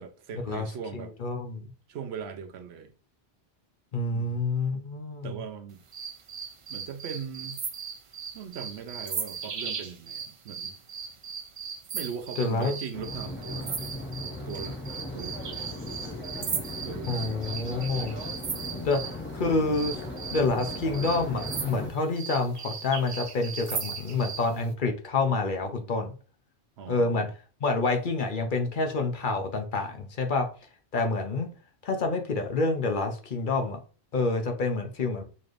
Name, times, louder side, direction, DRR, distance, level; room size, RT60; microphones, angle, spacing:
voice 1, 0.0-1.1 1.9-2.9 4.1-4.4 5.2-5.8 6.7-7.6 8.3-10.8 11.9-13.8 14.5-15.7 16.8-17.4 18.7-18.9 26.8-27.3, right 7 dB, 75° right, 0.9 m, -40 dB
voice 2, 0.9-1.7 3.9-5.4 12.4-12.8 17.1-18.2 18.8-19.9 20.3-26.1 26.9-27.3 27.6-30.5 30.9-31.5 31.8-33.8 34.1-35.2, left 3 dB, 55° left, 0.8 m, -28 dB
sound 1, 5.9-19.2 19.7-24.5, right 6 dB, 55° right, 0.3 m, -37 dB
sound 2, 12.9-21.9, left 2 dB, 15° left, 0.4 m, -38 dB
4.1 x 3.2 x 2.5 m
omnidirectional pair, 1.1 m